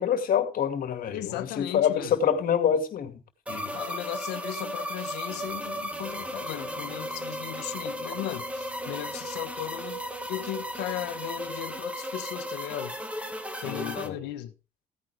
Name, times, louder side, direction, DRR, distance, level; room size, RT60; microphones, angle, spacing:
voice 1, 0.0-3.2 3.5-3.7 13.7-14.2, left 8 dB, 55° left, 2.3 m, -26 dB
voice 2, 1.1-2.2 3.7-10.0 10.3-13.0 13.6-14.5, left 14 dB, 90° left, 1.5 m, -36 dB
sound 1, 3.5-14.1, equal, 5° right, 1.8 m, -35 dB
Guitar, 5.3-11.9, right 5 dB, 45° right, 5.0 m, -52 dB
16.0 x 9.4 x 3.5 m
cardioid pair, 110°, 17 cm